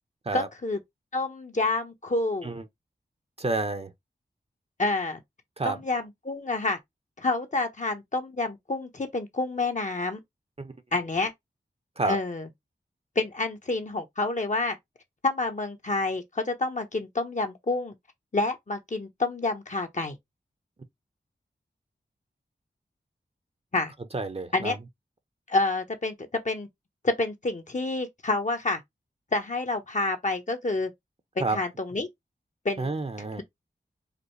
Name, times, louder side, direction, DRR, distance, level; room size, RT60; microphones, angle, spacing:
voice 1, 0.3-0.8 1.1-2.6 4.8-5.2 5.6-6.8 7.2-10.2 10.9-11.3 12.1-12.5 13.1-14.8 15.2-17.9 18.3-20.2 23.7-23.9 24.5-24.8 25.5-26.7 27.0-28.8 29.3-30.9 31.4-32.1 32.6-32.9, left 2 dB, 40° left, 1.0 m, -28 dB
voice 2, 3.4-3.9 5.6-5.8 10.6-10.8 12.0-12.2 24.1-24.7 31.4-31.6 32.8-33.4, right 3 dB, 35° right, 0.8 m, -29 dB
5.1 x 2.1 x 3.1 m
cardioid pair, 50°, 18 cm